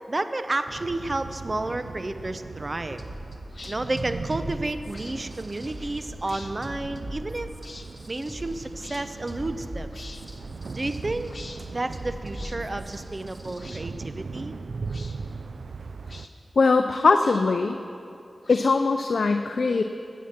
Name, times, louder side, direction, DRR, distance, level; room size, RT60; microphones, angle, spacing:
voice 1, 0.1-3.0 3.6-7.5 8.1-9.9 10.7-11.3 11.7-14.5, right 2 dB, 40° right, 10 dB, 0.6 m, -31 dB
sound 1, 0.7-16.3, right 4 dB, 80° right, 0.3 m, -39 dB
sound 2, 3.0-13.6, equal, 10° right, 1.4 m, -41 dB
Several Vocal Swishes, 3.5-3.8 4.9-5.2 6.2-6.5 7.6-7.9 8.8-9.0 9.9-10.2 11.3-11.6 12.3-12.6 13.5-13.9 14.8-15.2 16.1-16.3 17.2-17.6 18.4-19.0, left 3 dB, 60° left, 0.9 m, -45 dB
voice 2, 16.6-17.8 18.5-19.8, left 4 dB, 75° left, 6 dB, 0.4 m, -21 dB
13.5 x 8.3 x 5.8 m, 2.6 s
cardioid pair, 40°, 0 cm